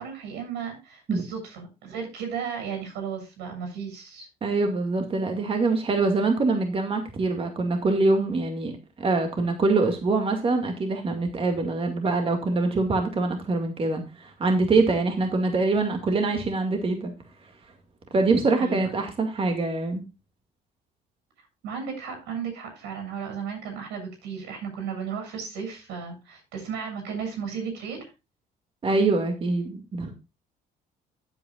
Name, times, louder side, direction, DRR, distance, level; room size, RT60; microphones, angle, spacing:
voice 1, 0.0-4.3 18.6-18.9 21.6-28.1, right 6 dB, 90° right, 4 dB, 7.3 m, -34 dB
voice 2, 4.4-17.1 18.1-20.0 28.8-30.1, right 3 dB, 35° right, 4 dB, 2.2 m, -24 dB
15.5 x 8.3 x 2.5 m, 0.27 s
cardioid pair, 110°, 17 cm